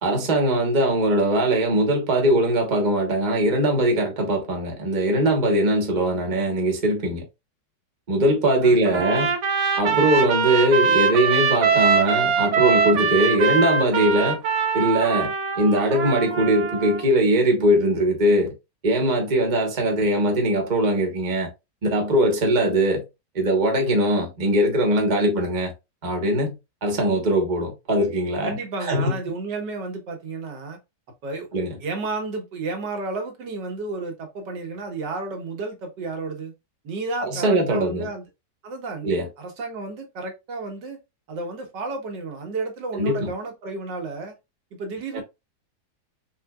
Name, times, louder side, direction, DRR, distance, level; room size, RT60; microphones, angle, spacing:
voice 1, 0.0-7.2 8.1-9.3 9.8-14.4 14.7-18.5 18.8-21.5 21.8-23.1 23.3-25.7 26.0-26.5 26.8-29.2 31.5-31.8 37.2-38.1 39.0-39.3 42.9-43.3 45.1-45.2, right 1 dB, 30° right, 1.1 m, -21 dB
voice 2, 8.6-9.1 9.9-10.1 28.4-30.8 31.2-31.5 31.8-36.5 36.8-38.2 38.6-39.1 39.4-41.0 41.3-44.3 44.7-45.2, right 3 dB, 80° right, 1.8 m, -32 dB
Trumpet, 8.9-17.1, right 6 dB, 55° right, 0.9 m, -22 dB
4.4 x 3.8 x 2.3 m
omnidirectional pair, 1.9 m